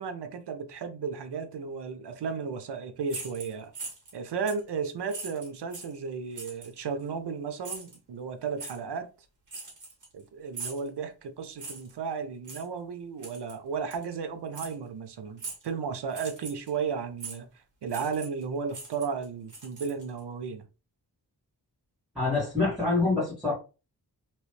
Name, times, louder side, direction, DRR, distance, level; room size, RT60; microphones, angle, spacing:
voice 1, 0.0-3.7 4.1-9.1 10.1-17.5 17.8-20.6, right 5 dB, 80° right, 0.7 m, -34 dB
sound 1, 3.1-4.2 4.5-4.7 5.1-6.0 6.4-6.7 7.6-8.0 8.6-8.8 9.5-10.2 10.5-10.9 11.6-11.9 12.4-12.7 13.2-13.6 13.9-14.0 14.5-14.7 15.4-15.7 16.1-16.7 17.2-17.4 17.9-18.4 18.7-20.2, right 4 dB, 50° right, 1.3 m, -41 dB
voice 2, 22.2-23.5, left 3 dB, ahead, 1.8 m, -26 dB
3.1 x 3.0 x 3.1 m
wide cardioid pair, 125°, 40 cm